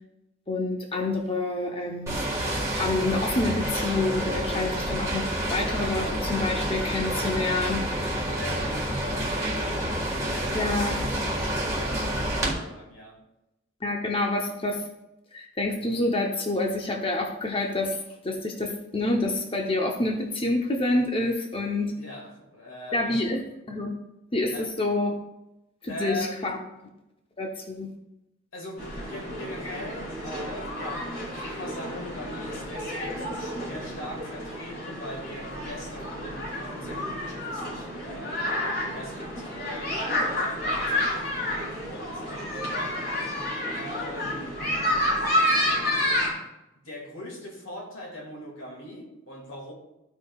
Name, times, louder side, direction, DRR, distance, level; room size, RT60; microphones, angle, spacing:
voice 1, 0.5-2.2 2.7-7.9 10.5-10.9 13.8-14.8 15.3-18.0 18.2-21.9 22.9-23.9 24.3-25.2 25.8-26.6 27.4-27.9, left 2 dB, 30° left, 0.7 m, -27 dB
sound 1, 2.1-12.5, right 1 dB, 15° right, 1.6 m, -28 dB
voice 2, 7.9-13.2 22.0-23.3 24.5-24.7 25.9-26.7 28.5-42.6 43.7-44.6 46.8-49.7, left 1 dB, 85° left, 2.1 m, -41 dB
sound 2, 28.8-46.3, left 1 dB, 55° left, 2.9 m, -30 dB
14.0 x 5.0 x 2.3 m
head